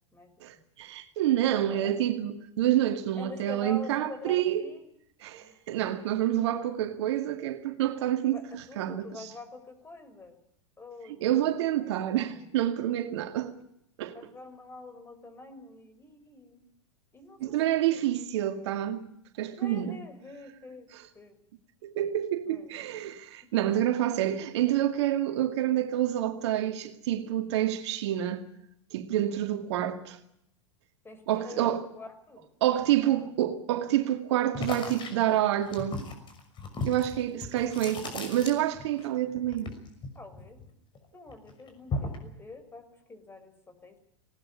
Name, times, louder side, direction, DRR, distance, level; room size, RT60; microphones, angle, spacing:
voice 1, 0.4-4.6 5.2-8.4 8.8-9.1 11.2-13.5 14.0-14.2 17.4-19.1 19.4-20.0 21.8-28.4 28.9-30.2 31.3-31.8 32.6-36.0 36.8-39.7, right 12 dB, 65° right, 2.2 m, -28 dB
voice 2, 1.5-2.0 3.2-4.9 5.4-5.7 8.3-10.4 10.8-11.2 11.8-12.5 14.1-16.6 17.1-18.0 19.6-20.9 21.1-21.4 22.5-22.7 23.4-23.9 31.0-33.3 39.3-39.4 40.1-40.6 41.1-44.0, left 3 dB, 15° left, 5.6 m, -46 dB
sound 1, 34.5-39.1 39.3-41.0 41.3-42.3, left 3 dB, 30° left, 6.1 m, -36 dB
20.0 x 18.5 x 9.9 m
hypercardioid pair, 95°, 16 cm